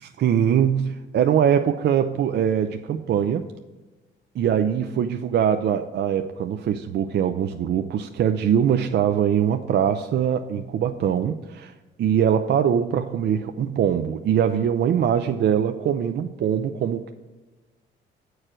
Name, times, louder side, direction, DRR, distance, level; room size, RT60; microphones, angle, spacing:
voice 1, 0.2-3.5 4.4-17.1, right 8 dB, 60° right, 7 dB, 0.5 m, -22 dB
8.7 x 4.7 x 6.1 m, 1.2 s
cardioid pair, 90°, 20 cm